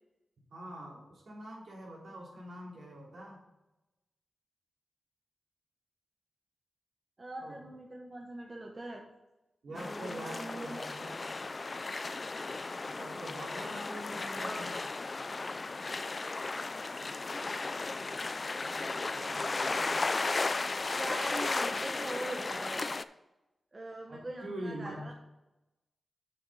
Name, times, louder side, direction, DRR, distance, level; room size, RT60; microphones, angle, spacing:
voice 1, 0.5-3.4 7.4-7.6 9.6-11.2 12.8-14.8 18.5-19.9 24.1-25.1, right 1 dB, 75° right, -4 dB, 3.3 m, -44 dB
voice 2, 7.2-9.0 9.7-10.8 14.4-14.8 20.9-22.8 23.7-25.1, right 1 dB, 35° right, 0 dB, 1.2 m, -42 dB
sound 1, 9.7-23.0, left 3 dB, 40° left, 0.4 m, -35 dB
7.1 x 6.0 x 5.6 m, 0.98 s
cardioid pair, 75°, 0 cm